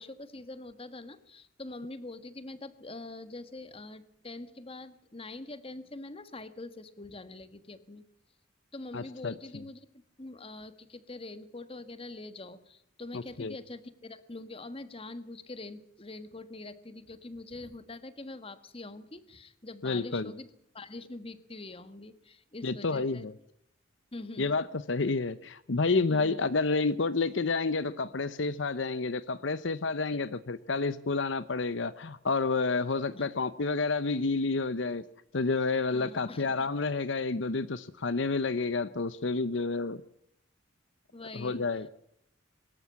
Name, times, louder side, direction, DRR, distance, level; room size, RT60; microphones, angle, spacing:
voice 1, 0.0-8.0 8.7-9.9 10.2-23.3 24.1-24.6 26.1-26.4 30.1-30.3 33.1-33.3 35.9-36.7 41.1-41.9, left 2 dB, 30° left, 12 dB, 1.4 m, -44 dB
voice 2, 8.9-9.3 13.4-13.5 19.8-20.3 22.6-23.3 24.4-35.0 35.3-40.0 41.3-41.9, left 3 dB, 65° left, 15 dB, 0.8 m, -29 dB
23.5 x 13.5 x 9.7 m, 0.72 s
head